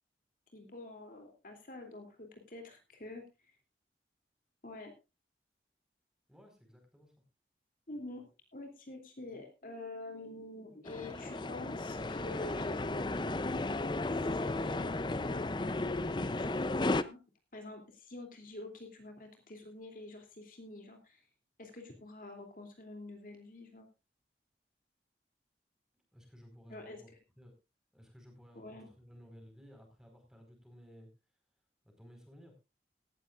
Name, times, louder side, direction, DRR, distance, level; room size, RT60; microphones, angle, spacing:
voice 1, 0.5-3.5 4.6-4.9 7.9-13.2 14.1-17.2 17.5-21.3 21.6-23.9 26.7-27.0 28.5-28.9, left 2 dB, 50° left, 4 dB, 3.0 m, -47 dB
voice 2, 6.3-7.1 25.9-27.1 27.4-27.5 27.9-31.1 31.8-32.5, equal, 5° right, 3 dB, 4.7 m, -56 dB
sound 1, 10.9-17.0, left 2 dB, 25° left, 0.6 m, -34 dB
17.5 x 13.5 x 2.5 m, 0.28 s
head